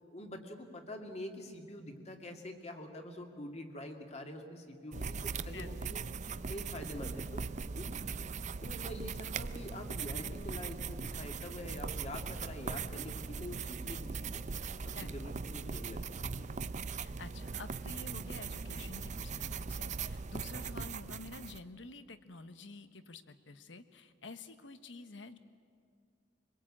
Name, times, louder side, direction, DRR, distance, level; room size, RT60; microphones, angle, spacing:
voice 1, 0.0-6.0 6.5-7.4 7.8-8.0 8.6-14.5 14.8-16.5, left 1 dB, 35° left, 4 dB, 2.3 m, -45 dB
sound 1, 4.9-21.6, right 5 dB, 40° right, 0.5 m, -40 dB
voice 2, 16.9-25.4, left 3 dB, 75° left, 11 dB, 1.2 m, -49 dB
24.0 x 21.0 x 8.7 m, 2.2 s
head